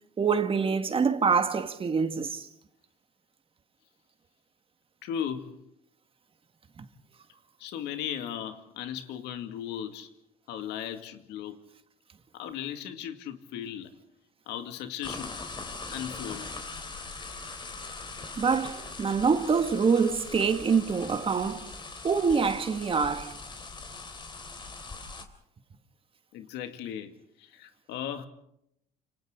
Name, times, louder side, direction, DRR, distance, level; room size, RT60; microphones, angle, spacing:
voice 1, 0.2-2.5 6.8-6.9 18.4-21.7 22.0-23.4, right 5 dB, 35° right, 1.9 m, -25 dB
voice 2, 5.0-5.6 7.6-10.1 10.5-11.6 12.3-13.9 14.5-15.3 15.9-16.5 26.3-28.3, left 9 dB, 85° left, 2.3 m, -37 dB
sound 1, 15.0-25.2, left 3 dB, 30° left, 3.8 m, -41 dB
30.0 x 27.5 x 3.9 m
cardioid pair, 110°, 17 cm